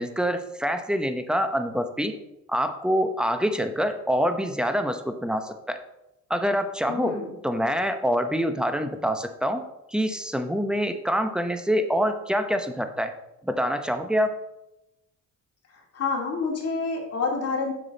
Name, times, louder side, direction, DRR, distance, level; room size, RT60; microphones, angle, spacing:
voice 1, 0.0-2.1 2.5-5.8 6.3-7.2 7.4-9.6 9.9-13.1 13.4-14.3, equal, 5° right, 7 dB, 0.8 m, -25 dB
voice 2, 6.9-7.3 15.9-17.7, left 4 dB, 55° left, 0 dB, 2.3 m, -28 dB
7.6 x 6.1 x 4.1 m, 0.90 s
cardioid pair, 90°, 30 cm